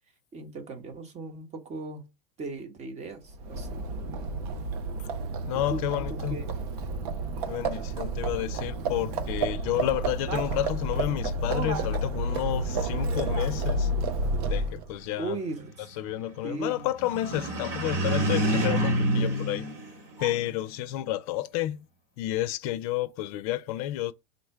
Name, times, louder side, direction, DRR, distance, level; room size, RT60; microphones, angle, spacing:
voice 1, 0.3-2.1 2.4-3.9 5.5-5.8 6.1-6.5 15.2-15.9 16.4-16.9, right 2 dB, 35° right, 1.0 m, -37 dB
Livestock farm animals working animals, 3.3-14.9, right 2 dB, 75° right, 0.7 m, -30 dB
voice 2, 5.5-6.4 7.5-13.9 14.5-15.4 15.8-19.7 20.2-21.8 22.2-24.1, left 14 dB, 65° left, 0.5 m, -31 dB
sound 1, 17.0-20.6, right 1 dB, 60° right, 1.9 m, -27 dB
4.0 x 2.2 x 4.5 m
supercardioid pair, 105°, 20 cm